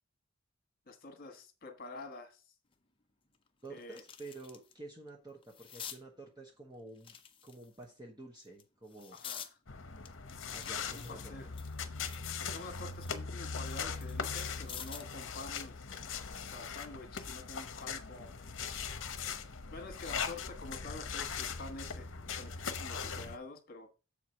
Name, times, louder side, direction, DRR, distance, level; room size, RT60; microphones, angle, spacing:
voice 1, 0.9-2.4 3.7-4.0 9.1-9.5 10.6-11.5 12.4-15.8 16.5-18.3 19.7-22.1 22.4-23.9, left 2 dB, 45° left, 1.5 m, -47 dB
sound 1, 2.7-2.8 3.3-4.7 5.1-6.0 6.9-7.8 8.4-9.5 10.0-12.3 12.7-15.2 16.5-16.7, left 8 dB, 25° left, 0.7 m, -49 dB
voice 2, 3.6-7.2 7.4-9.2 10.5-11.5, right 2 dB, 20° right, 1.1 m, -50 dB
sound 2, 9.7-23.4, left 6 dB, 60° left, 0.9 m, -40 dB
7.2 x 4.7 x 5.8 m
head